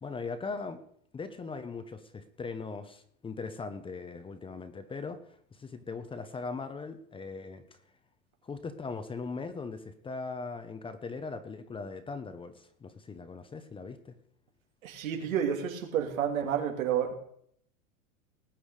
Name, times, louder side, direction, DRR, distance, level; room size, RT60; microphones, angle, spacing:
voice 1, 0.0-0.8 1.1-7.6 8.4-14.1, left 4 dB, 15° left, 0.9 m, -39 dB
voice 2, 14.8-17.1, right 8 dB, 85° right, 3.3 m, -30 dB
19.5 x 8.6 x 4.9 m
supercardioid pair, 135°, 40 cm